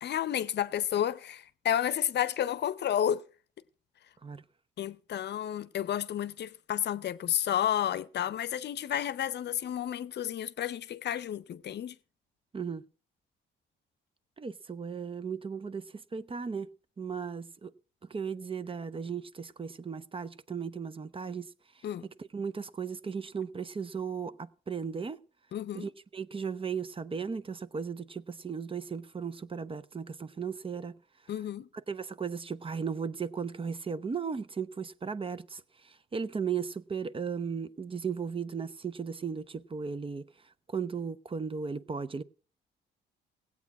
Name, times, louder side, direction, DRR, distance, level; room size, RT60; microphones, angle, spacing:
voice 1, 0.0-3.3 4.8-12.0 21.8-22.0 25.5-25.9 31.3-31.7, left 10 dB, 60° left, 0.7 m, -31 dB
voice 2, 12.5-12.8 14.4-16.7 17.0-17.7 18.1-21.5 22.2-25.2 25.7-31.0 31.9-40.2 40.7-42.2, right 6 dB, 25° right, 0.6 m, -36 dB
16.5 x 8.4 x 5.9 m
cardioid pair, 90°, 20 cm